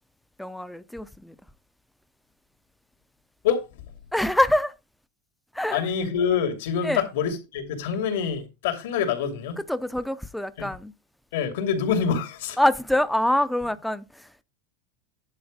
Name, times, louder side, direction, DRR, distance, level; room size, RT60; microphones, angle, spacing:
voice 1, 0.4-1.4 4.1-4.7 5.5-5.9 6.8-7.0 9.7-10.9 12.6-14.3, left 1 dB, ahead, 0.6 m, -25 dB
voice 2, 5.7-9.6 10.6-10.7 11.3-12.6, left 7 dB, 75° left, 2.8 m, -26 dB
10.5 x 5.0 x 5.1 m
supercardioid pair, 150°, 0 cm